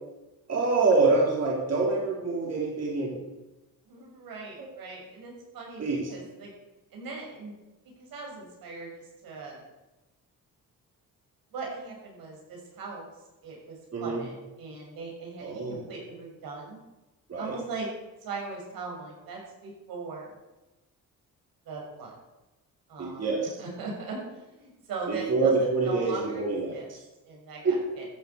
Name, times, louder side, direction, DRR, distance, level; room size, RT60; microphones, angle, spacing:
voice 1, 0.5-3.3 5.8-6.0 13.9-14.2 15.4-15.8 17.3-17.6 23.0-23.5 25.1-27.0 27.6-27.7, right 3 dB, 45° right, -2 dB, 3.9 m, -26 dB
voice 2, 3.9-6.5 6.9-7.5 8.0-8.9 9.2-9.6 11.5-13.1 13.4-16.8 17.4-17.9 18.2-20.3 21.6-22.1 22.9-23.3 23.6-26.4 26.7-26.9 27.2-28.1, right 4 dB, 85° right, -1 dB, 6.2 m, -39 dB
14.0 x 8.1 x 8.2 m, 1.0 s
cardioid pair, 85°, 34 cm